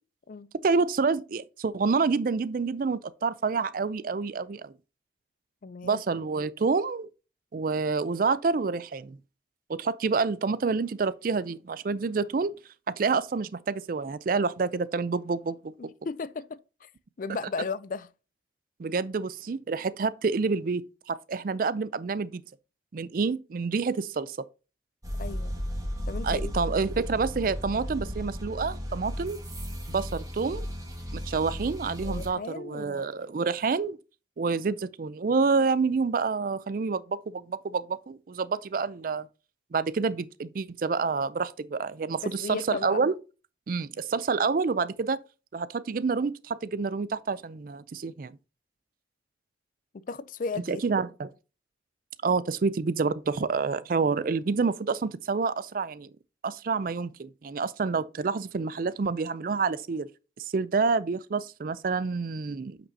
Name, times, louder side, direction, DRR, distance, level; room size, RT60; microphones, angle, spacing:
voice 1, 0.6-4.7 5.8-7.1 7.5-9.2 9.7-12.5 12.9-15.7 18.8-22.4 22.9-24.4 26.2-29.4 29.9-30.6 31.1-34.0 34.4-39.3 39.7-43.1 43.7-45.2 45.5-48.3 50.7-51.3 52.2-56.1 56.4-60.1 60.4-62.8, right 4 dB, 50° right, 0.4 m, -28 dB
voice 2, 5.6-6.0 15.8-16.9 17.2-18.1 25.2-25.6 26.1-26.5 32.0-33.1 42.4-43.0 49.9-50.8, left 4 dB, 45° left, 0.4 m, -35 dB
sound 1, 25.0-32.3, equal, 20° right, 1.8 m, -35 dB
8.2 x 6.0 x 2.7 m
head